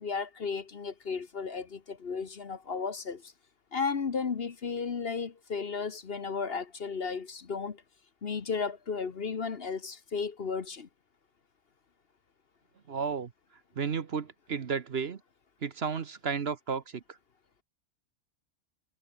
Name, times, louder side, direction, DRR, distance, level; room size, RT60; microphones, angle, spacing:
voice 1, 0.0-3.3 3.7-7.8 8.2-10.9, left 5 dB, 45° left, 1.3 m, -34 dB
voice 2, 12.9-13.3 13.8-15.2 15.6-17.2, right 6 dB, 50° right, 1.2 m, -33 dB
omnidirectional pair, 1.4 m